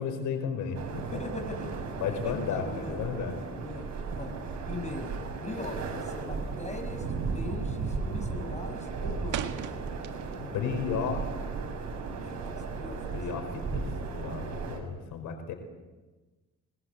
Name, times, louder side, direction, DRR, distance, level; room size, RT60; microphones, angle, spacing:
voice 1, 0.0-1.2 2.0-3.3 10.4-11.3 13.1-15.5, left 6 dB, 85° left, 5 dB, 5.2 m, -33 dB
sound 1, 0.7-14.8, right 4 dB, 65° right, 6.4 m, -35 dB
voice 2, 1.1-1.7 2.1-4.4 4.7-7.1 7.3-9.6 12.2-13.0, left 2 dB, 25° left, 5 dB, 5.6 m, -41 dB
sound 2, 9.3-10.6 10.9-12.4, right 10 dB, 80° right, 1.8 m, -39 dB
25.5 x 22.0 x 8.2 m, 1.2 s
cardioid pair, 90°, 30 cm